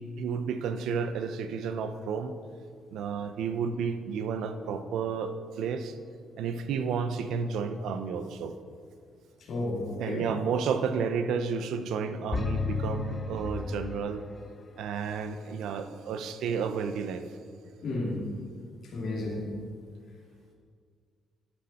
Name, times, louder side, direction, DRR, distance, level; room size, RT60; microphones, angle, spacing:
voice 1, 0.0-2.3 2.9-6.0 6.4-8.5 10.0-14.2 14.8-17.3, right 6 dB, 80° right, 9 dB, 0.7 m, -31 dB
voice 2, 9.5-10.2 17.8-18.2 18.9-19.4, left 2 dB, 50° left, -5 dB, 2.8 m, -32 dB
sound 1, 12.3-14.4, left 4 dB, 25° left, 0.7 m, -32 dB
11.5 x 10.0 x 4.3 m, 2.1 s
cardioid pair, 155°, 0 cm